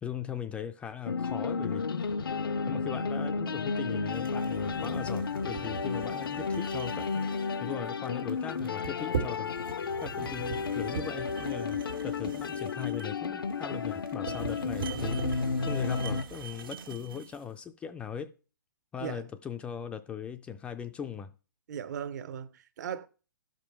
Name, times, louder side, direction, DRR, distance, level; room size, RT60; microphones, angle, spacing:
voice 1, 0.0-2.1 2.7-7.3 7.6-9.5 10.0-18.3 18.9-21.3, left 8 dB, 10° left, 0.3 m, -39 dB
sound 1, 1.1-16.2, left 5 dB, 85° left, 0.6 m, -32 dB
sound 2, 4.1-17.4, right 6 dB, 75° right, 1.6 m, -40 dB
voice 2, 21.7-23.1, right 8 dB, 55° right, 0.8 m, -38 dB
12.0 x 5.2 x 4.5 m
hypercardioid pair, 145°, 12 cm